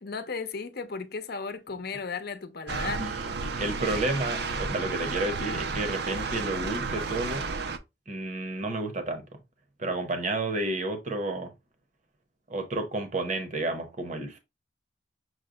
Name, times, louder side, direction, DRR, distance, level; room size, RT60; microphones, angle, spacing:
voice 1, 0.0-3.1, left 4 dB, 60° left, 0.7 m, -35 dB
sound 1, 2.7-7.8, right 4 dB, 65° right, 0.6 m, -32 dB
voice 2, 3.0-7.4 8.1-9.2 9.8-11.5 12.5-14.4, right 2 dB, 45° right, 0.9 m, -31 dB
6.3 x 2.2 x 3.7 m
head